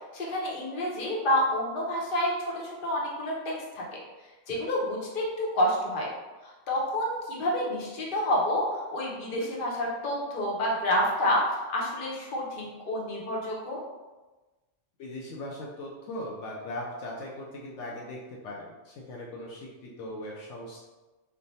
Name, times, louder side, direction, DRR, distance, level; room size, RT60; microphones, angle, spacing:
voice 1, 0.1-4.0 4.5-6.1 6.4-11.4 11.7-13.8, left 1 dB, 50° left, -3 dB, 0.9 m, -29 dB
voice 2, 15.0-20.9, left 1 dB, 75° left, -3 dB, 0.9 m, -39 dB
3.3 x 2.2 x 4.0 m, 1.2 s
omnidirectional pair, 1.3 m